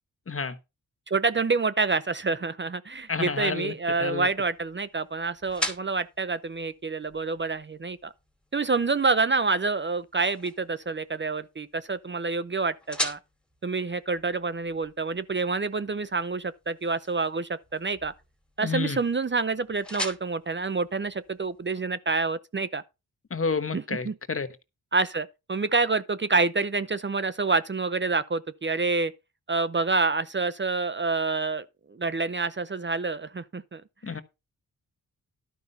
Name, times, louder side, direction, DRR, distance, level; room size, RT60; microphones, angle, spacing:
voice 1, 1.1-8.1 8.5-13.2 13.6-18.1 18.6-22.8 23.7-24.1 24.9-29.1 29.5-31.6 31.9-34.2, right 4 dB, 30° right, 0.7 m, -27 dB
sound 1, 2.9-21.7, equal, 5° left, 2.6 m, -42 dB
voice 2, 3.1-3.7 4.0-4.3 18.6-19.0 23.3-24.5 34.0-34.2, left 5 dB, 35° left, 1.3 m, -29 dB
11.5 x 5.4 x 5.5 m
cardioid pair, 80°, 36 cm